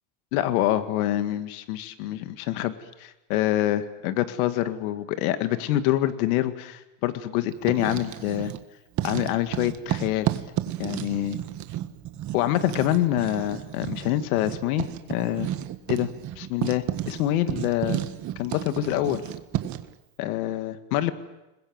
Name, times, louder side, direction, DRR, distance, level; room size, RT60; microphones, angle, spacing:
voice 1, 0.3-2.7 3.0-8.5 9.0-10.3 10.8-11.4 12.3-15.5 15.9-16.1 16.4-18.0 18.4-19.2 20.2-21.1, left 13 dB, 75° left, 10 dB, 1.9 m, -26 dB
Writing, 7.5-8.6 8.9-19.9, right 13 dB, 40° right, 1.6 m, -32 dB
29.5 x 21.0 x 7.9 m, 0.98 s
supercardioid pair, 135°, 44 cm